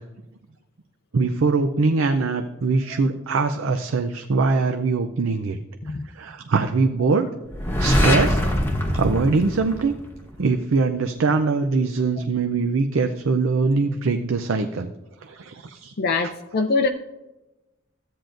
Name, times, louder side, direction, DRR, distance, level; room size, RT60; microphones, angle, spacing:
voice 1, 1.1-5.6 6.1-7.3 7.8-8.4 8.9-9.9 10.4-14.9 15.2-15.9, right 4 dB, 80° right, 7 dB, 0.5 m, -22 dB
sound 1, 7.5-10.4, left 1 dB, 10° left, 1.1 m, -22 dB
voice 2, 16.0-16.9, left 3 dB, 50° left, 5 dB, 0.5 m, -23 dB
13.5 x 8.9 x 2.6 m, 1.0 s
head